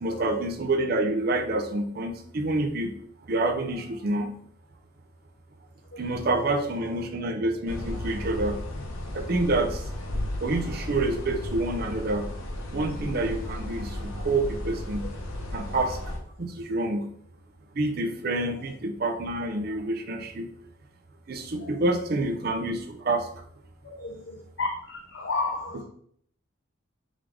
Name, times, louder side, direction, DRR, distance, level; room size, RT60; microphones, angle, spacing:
voice 1, 0.0-2.9 3.2-4.3 6.0-8.6 9.1-9.8 10.4-12.3 12.7-15.0 15.5-16.1 16.4-17.1 17.7-20.5 21.3-23.3, right 2 dB, 45° right, 5 dB, 0.5 m, -27 dB
sound 1, 7.7-16.2, left 1 dB, 85° left, 0.8 m, -34 dB
voice 2, 23.9-25.8, left 3 dB, 60° left, 2 dB, 0.5 m, -32 dB
3.7 x 3.4 x 3.5 m, 0.64 s
head